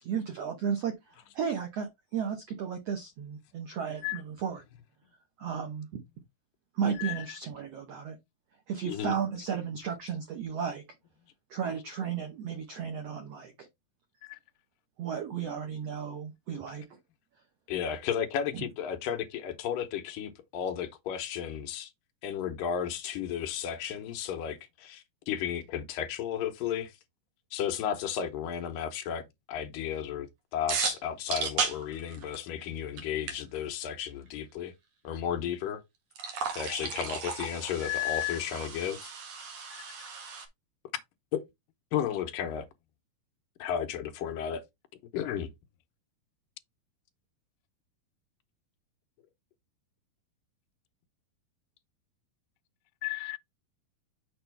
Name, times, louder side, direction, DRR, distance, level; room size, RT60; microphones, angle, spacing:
voice 1, 0.0-4.6 5.4-6.0 6.7-8.2 8.7-10.8 11.5-13.7 15.0-16.8 18.5-18.6, right 7 dB, 85° right, 1.4 m, -34 dB
voice 2, 17.7-21.9 22.2-27.0 27.5-34.7 35.0-35.8 36.6-39.1 41.3-41.4 41.9-42.7 43.6-44.6 45.1-45.5, left 9 dB, 75° left, 2.3 m, -33 dB
sound 1, 30.7-32.6 33.0-33.1 33.3-33.4 36.1-40.5, right 5 dB, 60° right, 2.8 m, -35 dB
voice 3, 37.8-38.4 53.0-53.4, left 27 dB, 90° left, 2.5 m, -32 dB
6.8 x 5.5 x 3.3 m
omnidirectional pair, 4.4 m